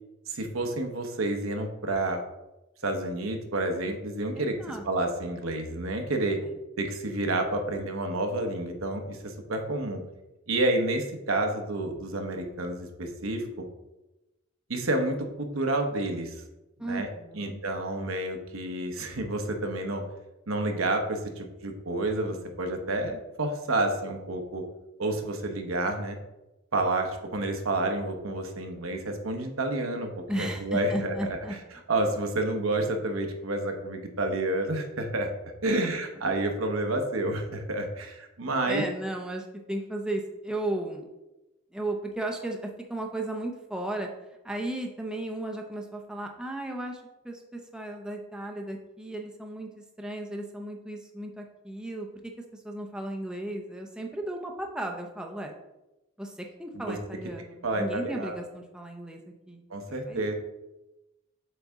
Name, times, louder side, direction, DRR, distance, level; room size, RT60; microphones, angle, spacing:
voice 1, 0.3-2.2 2.8-6.4 6.8-10.0 10.5-13.6 14.7-16.4 16.8-20.0 20.5-24.6 25.0-26.2 26.7-31.4 31.9-35.3 35.6-38.9 56.7-57.0 57.6-58.4 59.7-60.3, right 2 dB, 80° right, 4 dB, 1.0 m, -29 dB
voice 2, 4.4-4.8 6.4-6.5 16.8-17.6 30.3-31.6 35.6-35.9 38.6-41.1 41.7-44.1 44.4-49.7 50.0-52.1 52.6-55.5 56.2-59.6 60.1-60.3, right 1 dB, 5° right, 1 dB, 0.6 m, -35 dB
7.8 x 4.1 x 3.6 m, 0.97 s
head